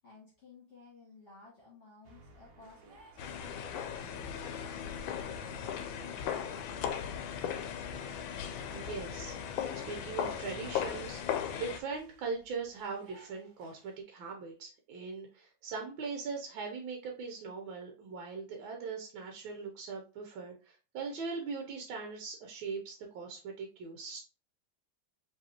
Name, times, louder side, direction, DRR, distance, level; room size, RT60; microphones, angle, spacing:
voice 1, 0.0-6.6, left 4 dB, 40° left, -7 dB, 1.7 m, -57 dB
sound 1, 2.0-14.0, right 2 dB, 50° right, 1.3 m, -58 dB
sound 2, 3.2-11.8, left 8 dB, 80° left, 1.3 m, -37 dB
voice 2, 8.7-24.2, right 4 dB, 75° right, 1 dB, 1.4 m, -40 dB
5.0 x 3.4 x 2.7 m, 0.36 s
omnidirectional pair, 2.1 m